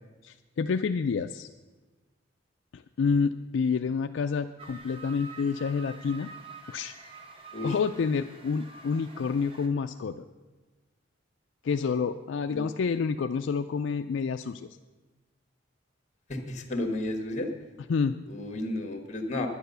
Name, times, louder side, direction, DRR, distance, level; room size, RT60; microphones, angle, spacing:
voice 1, 0.2-1.5 2.7-6.3 6.7-6.9 7.6-10.2 11.6-14.7 17.9-18.2, left 5 dB, 70° left, 8 dB, 0.4 m, -28 dB
sound 1, 4.6-9.7, right 4 dB, 30° right, 1.1 m, -47 dB
voice 2, 16.3-17.5 18.3-19.5, left 1 dB, 35° left, 6 dB, 1.5 m, -32 dB
10.0 x 10.0 x 6.7 m, 1.3 s
head